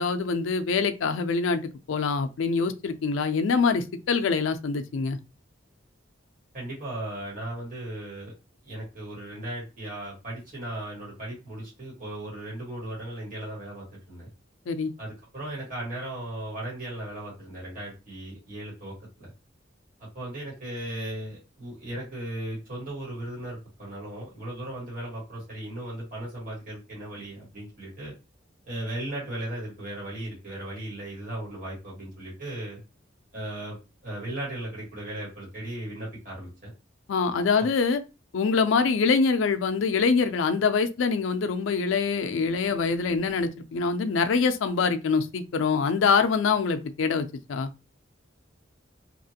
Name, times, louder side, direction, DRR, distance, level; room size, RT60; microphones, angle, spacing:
voice 1, 0.0-1.6 1.9-5.2 14.7-14.9 37.1-38.0 38.3-47.7, left 5 dB, 85° left, 0.4 m, -24 dB
voice 2, 6.5-8.3 8.6-14.3 15.0-19.3 20.1-28.1 28.6-32.8 33.3-33.7 34.0-36.7 37.6-37.7, right 1 dB, 45° right, 1.4 m, -37 dB
2.9 x 2.4 x 2.7 m
head